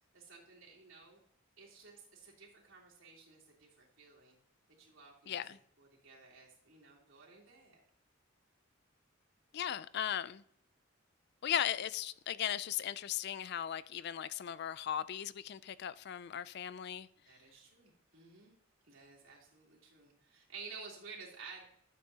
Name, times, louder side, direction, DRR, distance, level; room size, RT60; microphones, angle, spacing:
voice 1, 0.1-1.2 1.6-4.3 4.8-5.4 5.8-7.8 17.2-18.5 18.9-21.6, right 4 dB, 70° right, 3.2 m, -53 dB
voice 2, 5.3-5.6 9.5-10.4 11.4-17.1, left 10 dB, 55° left, 0.3 m, -37 dB
12.5 x 8.4 x 2.8 m
head